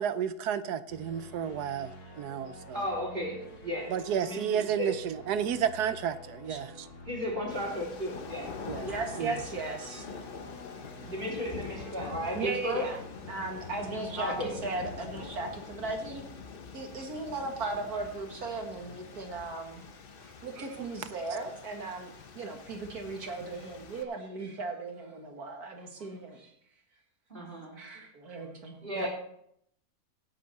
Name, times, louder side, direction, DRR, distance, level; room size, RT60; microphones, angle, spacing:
voice 1, 0.0-1.9 2.2-2.8 3.9-6.9 8.7-8.9 9.2-9.4, right 8 dB, 90° right, 13 dB, 1.3 m, -31 dB
sound 1, 0.9-14.9, left 1 dB, 80° left, 2.7 m, -49 dB
voice 2, 2.7-3.9 4.2-4.9 7.1-8.5 11.0-12.9 14.2-14.5 27.3-27.8 28.8-29.1, equal, 30° right, -2 dB, 4.2 m, -34 dB
sound 2, 7.5-24.0, left 5 dB, 40° left, 0.9 m, -45 dB
voice 3, 8.8-10.2 11.8-12.0 12.3-13.0 13.3-16.2 16.7-19.9 20.2-26.5 27.7-29.1, right 3 dB, 75° right, 3 dB, 2.3 m, -37 dB
17.0 x 8.4 x 4.2 m, 0.70 s
omnidirectional pair, 1.6 m